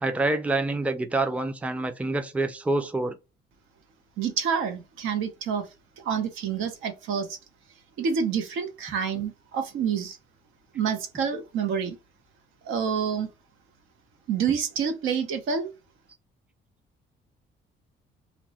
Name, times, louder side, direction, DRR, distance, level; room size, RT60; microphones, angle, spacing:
voice 1, 0.0-3.2, right 2 dB, 5° right, 0.4 m, -27 dB
voice 2, 4.2-5.6 6.0-7.4 8.0-10.2 10.7-12.0 12.6-13.3 14.3-15.7, right 7 dB, 85° right, 0.7 m, -28 dB
2.9 x 2.1 x 4.1 m
cardioid pair, 90°, 20 cm